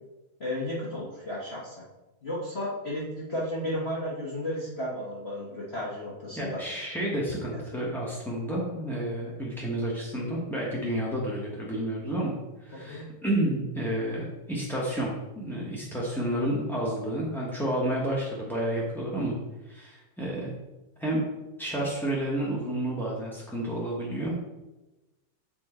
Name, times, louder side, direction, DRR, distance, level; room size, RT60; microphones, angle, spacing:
voice 1, 0.4-1.8 2.2-6.6 12.9-13.1, left 1 dB, 30° left, -8 dB, 1.5 m, -33 dB
voice 2, 6.4-19.4 19.7-20.5 21.0-21.2 21.6-24.3, right 1 dB, ahead, -6 dB, 0.6 m, -30 dB
7.5 x 4.5 x 4.3 m, 1.0 s
omnidirectional pair, 2.4 m